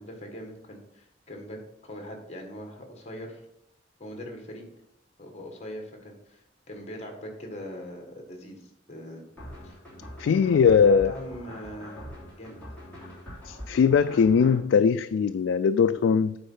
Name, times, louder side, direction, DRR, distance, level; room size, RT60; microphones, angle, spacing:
voice 1, 0.0-3.4 4.0-4.7 5.2-9.2 9.6-9.8 10.3-10.6 10.9-12.0 12.4-12.6, equal, 35° left, 3 dB, 1.8 m, -41 dB
sound 1, 9.4-14.6, equal, 10° left, 3.1 m, -43 dB
voice 2, 10.2-11.1 13.4-16.4, left 6 dB, 75° left, 11 dB, 0.3 m, -20 dB
8.8 x 4.2 x 5.5 m, 0.81 s
head